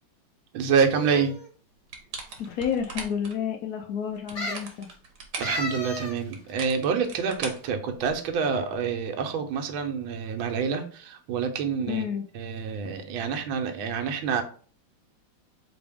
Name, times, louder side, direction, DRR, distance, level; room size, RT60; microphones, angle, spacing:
voice 1, 0.5-1.4 5.4-12.0 12.3-14.4, right 6 dB, 85° right, 5 dB, 1.5 m, -27 dB
sound 1, 0.9-1.5 2.3-2.4 2.7-2.8 4.3-4.7 5.4-6.2 6.5-6.6, left 1 dB, 40° left, 1.5 m, -33 dB
sound 2, 1.9-3.3 4.1-5.6 6.3-8.3, right 4 dB, 60° right, 1.4 m, -39 dB
voice 2, 2.4-4.9 11.9-12.3, left 8 dB, 75° left, 2 dB, 0.9 m, -30 dB
4.0 x 3.3 x 3.5 m, 0.42 s
omnidirectional pair, 2.1 m